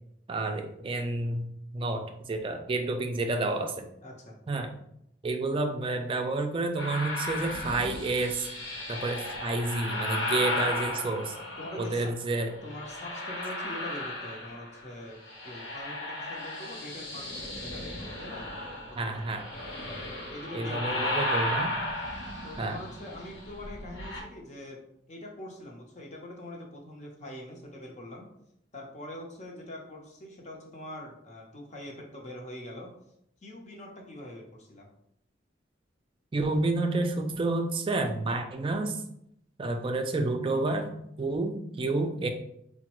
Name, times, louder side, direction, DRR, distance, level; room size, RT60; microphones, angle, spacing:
voice 1, 0.3-1.5 1.7-3.9 4.5-4.7 5.2-8.5 8.9-11.3 11.8-12.5 18.9-19.5 20.5-21.8 22.6-22.8 36.3-39.0 39.6-40.9 41.2-42.3, right 2 dB, 30° right, 5 dB, 0.4 m, -29 dB
voice 2, 4.0-4.4 11.6-12.1 12.6-15.2 15.4-18.5 19.0-19.2 20.0-21.3 22.4-28.3 28.7-32.9 33.4-34.9, left 1 dB, 40° left, -1 dB, 0.8 m, -43 dB
sound 1, 6.8-12.1 12.6-14.9 15.1-24.2, left 1 dB, 85° left, 1.1 m, -35 dB
4.8 x 2.2 x 3.0 m, 0.75 s
head